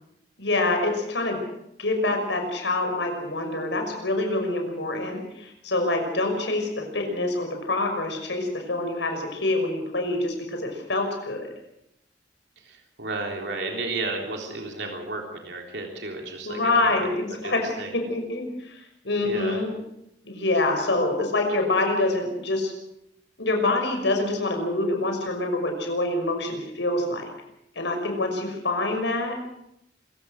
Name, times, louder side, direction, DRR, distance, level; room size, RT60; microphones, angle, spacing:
voice 1, 0.4-1.4 1.8-11.5 16.4-19.7 20.2-22.7 23.4-27.3 27.8-29.4, left 2 dB, 85° left, 4 dB, 5.9 m, -26 dB
voice 2, 12.7-16.6 17.0-17.1 17.4-17.9 19.2-19.6, right 3 dB, 70° right, 1 dB, 3.6 m, -33 dB
26.0 x 16.0 x 6.5 m, 0.80 s
head